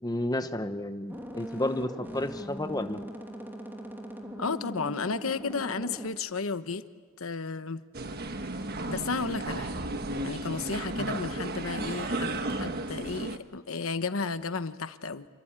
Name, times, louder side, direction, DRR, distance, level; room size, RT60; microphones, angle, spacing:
voice 1, 0.0-3.0 11.1-11.2, left 1 dB, 20° left, 8 dB, 1.0 m, -31 dB
sound 1, 1.1-6.1, equal, 10° right, 2.8 m, -40 dB
voice 2, 4.4-6.8 7.2-7.8 8.9-9.7 10.2-15.3, left 4 dB, 85° left, 11 dB, 1.1 m, -33 dB
sound 2, 7.9-13.4, right 2 dB, 50° right, 1.5 m, -34 dB
27.5 x 24.0 x 8.9 m, 1.5 s
head